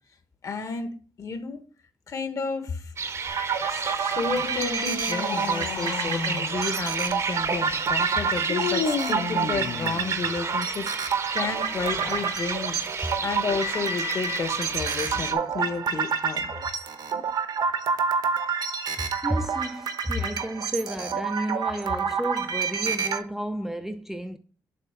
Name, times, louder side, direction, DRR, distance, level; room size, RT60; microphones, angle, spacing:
voice 1, 0.4-1.6 2.1-2.9 3.7-12.8 13.2-16.5 21.4-21.5 21.8-21.9, left 4 dB, 45° left, 1.2 m, -32 dB
sound 1, 3.0-15.3, right 5 dB, 40° right, 0.8 m, -32 dB
sound 2, 3.3-23.2, right 6 dB, 65° right, 1.0 m, -29 dB
sound 3, 4.3-6.6 8.5-10.3 11.9-12.4, left 6 dB, 70° left, 1.0 m, -32 dB
voice 2, 19.0-24.4, right 1 dB, 5° right, 0.4 m, -32 dB
7.6 x 3.3 x 4.8 m
cardioid pair, 135°, 8 cm